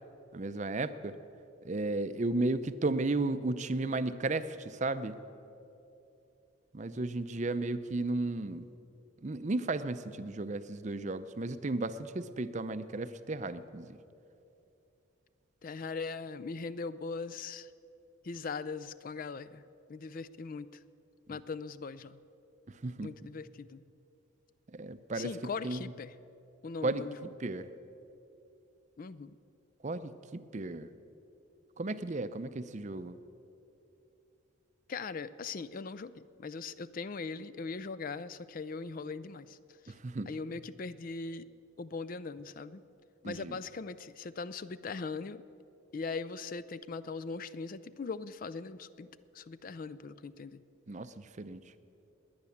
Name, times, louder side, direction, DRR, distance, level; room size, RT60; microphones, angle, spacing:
voice 1, 0.3-1.2 1.6-5.2 6.7-8.7 9.2-14.0 22.7-23.1 24.7-25.3 25.6-25.8 26.8-27.0 27.4-27.7 29.8-30.9 31.8-33.2 39.9-40.3 43.2-43.6 50.9-51.6, right 2 dB, 35° right, 12 dB, 0.5 m, -34 dB
voice 2, 15.6-17.7 18.2-19.6 19.9-20.7 21.3-22.2 23.0-23.8 25.1-26.1 26.6-27.3 29.0-29.4 34.9-39.6 39.8-39.9 40.3-41.5 41.8-42.8 43.2-45.4 45.9-50.6, left 4 dB, 40° left, 15 dB, 0.4 m, -40 dB
20.5 x 9.6 x 7.2 m, 2.8 s
head